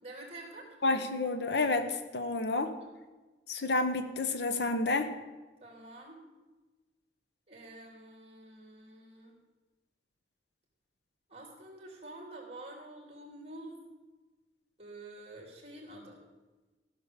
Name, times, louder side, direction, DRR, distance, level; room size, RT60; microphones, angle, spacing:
voice 1, 0.0-0.8 2.8-2.9 5.6-6.2 7.5-9.4 11.3-13.8 14.8-16.2, right 2 dB, 35° right, 0 dB, 3.0 m, -48 dB
voice 2, 0.8-2.7 3.5-5.1, left 3 dB, 70° left, 8 dB, 1.1 m, -30 dB
15.0 x 6.5 x 7.0 m, 1.2 s
head